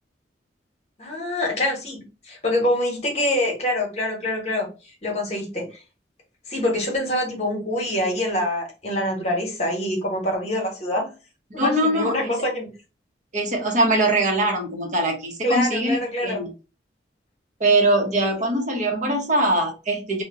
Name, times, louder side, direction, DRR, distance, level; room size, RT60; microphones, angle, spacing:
voice 1, 1.0-4.7 5.0-5.8 6.5-11.1 11.5-12.7 15.4-16.4, left 1 dB, 35° left, 0 dB, 1.0 m, -25 dB
voice 2, 11.6-12.3 13.3-16.5 17.6-20.2, right 1 dB, 40° right, 2 dB, 0.8 m, -22 dB
2.8 x 2.1 x 3.6 m, 0.31 s
head